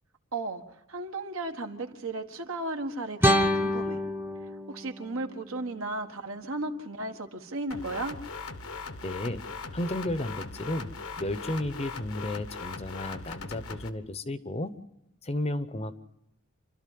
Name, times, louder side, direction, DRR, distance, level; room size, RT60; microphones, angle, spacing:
voice 1, 0.3-0.6 0.9-4.0 4.7-8.2, right 2 dB, 75° right, 5 dB, 1.7 m, -35 dB
sound 1, 3.2-6.2, left 1 dB, 10° right, 0.9 m, -28 dB
sound 2, 7.7-13.9, left 4 dB, 80° left, 1.2 m, -40 dB
voice 2, 9.0-9.4 9.7-10.9 11.2-14.7 15.2-16.0, left 1 dB, 30° left, 13 dB, 0.8 m, -33 dB
27.5 x 13.0 x 7.6 m, 0.82 s
head